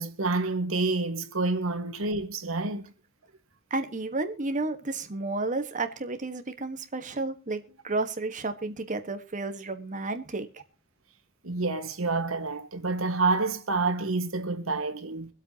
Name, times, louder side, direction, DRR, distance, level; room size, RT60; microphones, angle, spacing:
voice 1, 0.0-2.9 11.4-15.3, right 3 dB, 85° right, 1.6 m, -28 dB
voice 2, 3.7-10.6, right 3 dB, 40° right, 1.4 m, -32 dB
24.0 x 8.1 x 2.9 m
head